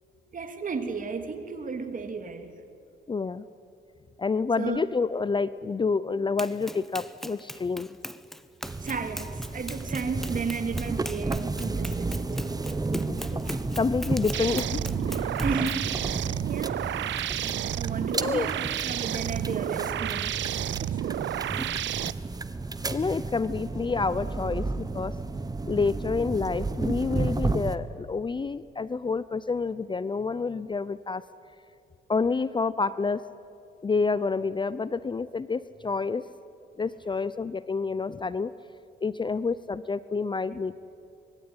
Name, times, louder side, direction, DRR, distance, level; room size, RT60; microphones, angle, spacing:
voice 1, 0.3-2.5 4.6-4.8 8.8-12.5 15.4-16.1 16.4-20.4 20.8-21.3, right 5 dB, 40° right, 7 dB, 2.8 m, -34 dB
voice 2, 3.1-3.4 4.2-7.9 13.1-13.4 13.8-15.3 16.3-16.4 18.1-18.5 22.9-25.2 25.7-31.2 32.1-33.2 33.8-36.3 36.8-38.5 39.0-40.8, left 4 dB, 25° left, 16 dB, 0.6 m, -28 dB
Run, 6.4-15.9, equal, ahead, 0.9 m, -40 dB
sound 1, 8.6-27.8, right 3 dB, 20° right, 1.2 m, -32 dB
sound 2, 14.3-22.1, right 13 dB, 65° right, 0.6 m, -31 dB
25.0 x 22.5 x 9.8 m, 2.6 s
cardioid pair, 90°, 20 cm